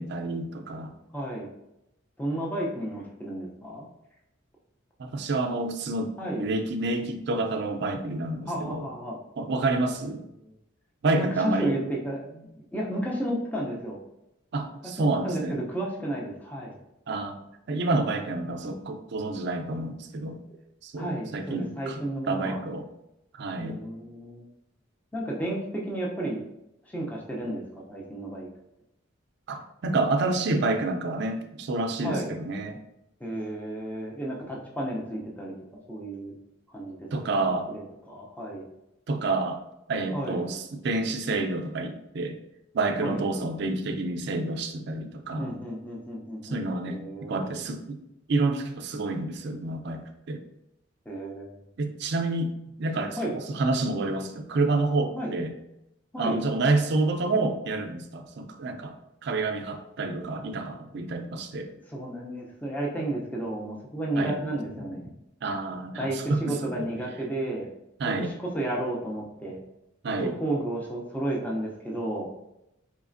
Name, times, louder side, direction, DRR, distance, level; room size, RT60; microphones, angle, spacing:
voice 1, 0.0-0.9 5.0-8.9 9.4-10.2 11.0-11.8 14.5-15.6 17.1-20.4 20.8-22.9 23.3-23.8 29.5-32.8 37.1-37.7 39.1-39.6 39.9-42.4 42.7-45.5 46.4-48.0 48.3-50.4 51.8-55.5 56.2-58.9 59.2-61.7 64.2-64.4 65.4-66.9 68.0-68.3 70.0-70.3, right 2 dB, 60° right, 5 dB, 0.4 m, -29 dB
voice 2, 1.1-1.5 2.2-3.9 6.2-6.4 8.5-9.2 11.1-12.5 12.7-14.0 15.0-16.8 21.0-22.6 23.6-24.4 25.1-26.4 26.8-28.5 32.0-32.3 33.2-36.3 36.7-37.1 37.5-38.6 40.1-40.5 43.0-43.2 45.4-46.6 46.8-47.6 51.1-51.5 53.2-53.4 55.2-55.3 56.1-56.4 61.9-65.1 66.0-67.7 68.2-69.6 70.2-72.3, right 1 dB, 10° left, -2 dB, 0.5 m, -32 dB
4.1 x 3.1 x 2.5 m, 0.86 s
head